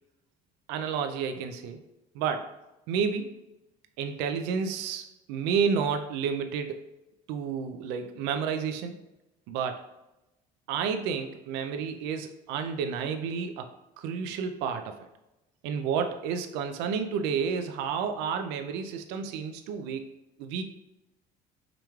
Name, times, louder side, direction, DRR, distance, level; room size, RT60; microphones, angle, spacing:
voice 1, 0.7-1.8 2.1-2.5 2.9-3.3 4.0-6.9 7.3-8.9 9.5-9.8 10.7-13.7 14.0-15.0 15.6-20.1 20.4-20.7, right 6 dB, 85° right, 7 dB, 0.4 m, -30 dB
4.9 x 3.0 x 2.3 m, 0.94 s
cardioid pair, 100°, 17 cm